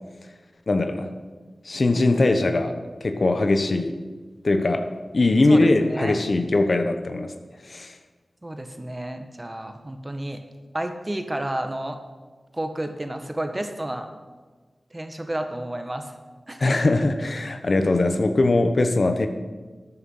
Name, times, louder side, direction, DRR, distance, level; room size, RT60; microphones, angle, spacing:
voice 1, 0.7-1.1 1.6-2.7 3.0-3.9 4.4-4.8 5.1-7.3 7.6-7.9 16.6-19.3, left 2 dB, 60° left, 7 dB, 1.1 m, -21 dB
voice 2, 5.5-6.1 8.4-10.4 10.7-12.0 12.5-14.1 14.9-16.1 16.5-16.8, right 1 dB, 25° right, 6 dB, 1.5 m, -31 dB
13.0 x 9.4 x 5.7 m, 1.3 s
cardioid pair, 45°, 0 cm